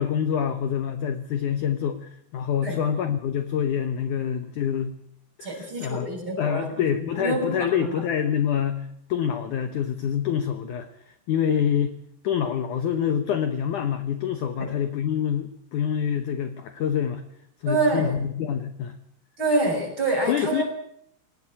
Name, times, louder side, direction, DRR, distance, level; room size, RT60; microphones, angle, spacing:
voice 1, 0.0-4.9 5.4-6.1 6.4-10.9 11.3-12.0 12.2-17.2 17.6-18.9 20.3-20.6, left 8 dB, 70° left, 8 dB, 1.9 m, -26 dB
voice 2, 5.4-6.7 7.2-7.9 14.6-14.7 17.7-18.2 19.4-20.6, right 2 dB, 25° right, 1 dB, 7.3 m, -26 dB
21.5 x 18.0 x 8.7 m, 0.74 s
omnidirectional pair, 5.1 m